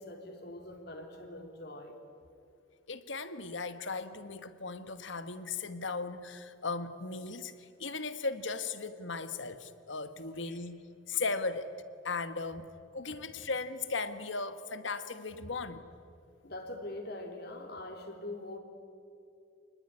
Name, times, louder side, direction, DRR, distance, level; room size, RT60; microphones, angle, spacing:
voice 1, 0.0-2.0 10.4-10.6 15.4-15.5 16.4-18.6, left 1 dB, 55° left, 4 dB, 3.6 m, -43 dB
voice 2, 2.9-10.8 11.1-11.7 12.0-15.9, left 4 dB, 70° left, 11 dB, 1.5 m, -37 dB
28.5 x 20.0 x 9.7 m, 2.5 s
head